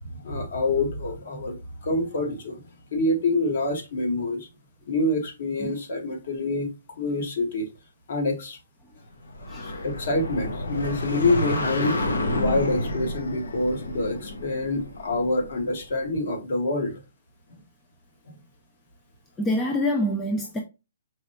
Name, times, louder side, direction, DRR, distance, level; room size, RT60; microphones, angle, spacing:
voice 1, 0.0-2.6 2.9-4.5 4.9-6.7 7.0-7.7 8.1-8.6 9.6-16.9 18.3-18.4, left 2 dB, 50° left, 1.4 m, -26 dB
sound 1, 9.2-15.8, left 1 dB, 90° left, 1.0 m, -30 dB
voice 2, 19.4-20.6, left 1 dB, 10° left, 0.4 m, -26 dB
4.8 x 3.2 x 2.7 m
hypercardioid pair, 170°, 0 cm